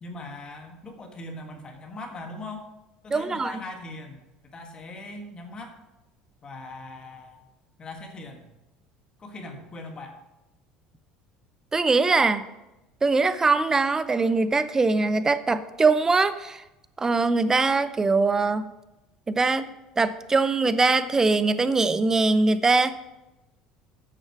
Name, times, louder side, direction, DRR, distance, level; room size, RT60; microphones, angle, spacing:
voice 1, 0.0-2.6 3.0-4.2 4.5-5.7 6.4-7.4 7.8-8.5 9.2-10.2, left 2 dB, 35° left, 4 dB, 1.6 m, -40 dB
voice 2, 3.1-3.5 11.7-12.4 13.0-16.6 17.0-18.6 19.3-23.0, right 3 dB, 20° right, 14 dB, 0.6 m, -22 dB
9.2 x 6.4 x 4.7 m, 0.97 s
supercardioid pair, 85°, 3 cm